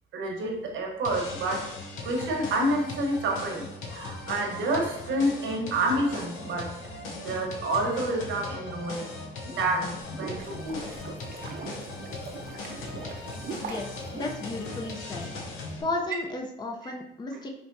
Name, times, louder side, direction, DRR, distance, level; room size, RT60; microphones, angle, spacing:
voice 1, 0.1-1.7 2.0-9.1 9.5-10.9 13.7-13.8 16.8-16.9, right 1 dB, 75° right, 0 dB, 1.1 m, -29 dB
sound 1, 1.0-15.8, left 3 dB, 90° left, 0.7 m, -39 dB
sound 2, 9.9-15.2, right 4 dB, 50° right, 0.6 m, -41 dB
voice 2, 13.6-15.3 15.8-17.5, left 2 dB, 20° left, 3 dB, 0.5 m, -34 dB
5.1 x 3.0 x 2.6 m, 0.82 s
cardioid pair, 90°, 20 cm